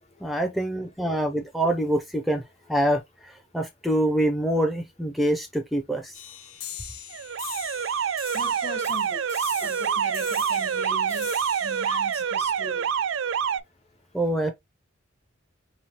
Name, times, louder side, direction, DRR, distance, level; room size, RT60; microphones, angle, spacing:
voice 1, 0.2-2.4 2.7-6.1 14.1-14.5, right 1 dB, ahead, 0.4 m, -25 dB
sound 1, 6.1-13.2, left 9 dB, 85° left, 0.8 m, -41 dB
Alarm, 7.1-13.6, right 7 dB, 65° right, 0.4 m, -26 dB
voice 2, 8.3-11.3 11.6-12.9, left 2 dB, 30° left, 0.7 m, -40 dB
4.7 x 3.0 x 2.8 m
head